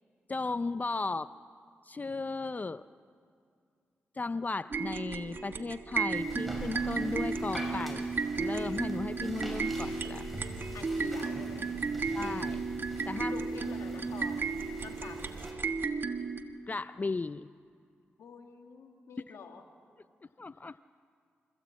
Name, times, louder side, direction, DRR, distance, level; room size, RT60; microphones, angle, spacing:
voice 1, 0.3-1.3 1.8-2.8 4.1-8.1 8.4-10.3 12.1-12.6 13.1-13.4 16.7-17.5 19.3-19.4 20.4-20.8, left 3 dB, 35° left, 15 dB, 0.5 m, -35 dB
sound 1, 4.7-16.4, right 4 dB, 50° right, 1.5 m, -34 dB
sound 2, 6.1-15.5, equal, ahead, 6.6 m, -44 dB
voice 2, 10.7-11.7 13.3-14.5 14.8-15.3 18.2-19.6, left 5 dB, 80° left, 4 dB, 2.0 m, -47 dB
26.5 x 15.0 x 8.6 m, 2.3 s
supercardioid pair, 40°, 5 cm